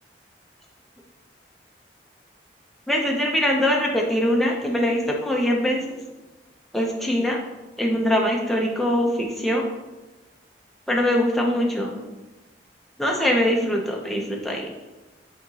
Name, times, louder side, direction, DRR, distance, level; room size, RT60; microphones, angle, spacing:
voice 1, 2.9-5.8 6.7-7.4 7.8-9.7 10.9-12.0 13.0-14.7, equal, ahead, -1 dB, 0.5 m, -22 dB
6.1 x 2.8 x 2.8 m, 1.1 s
head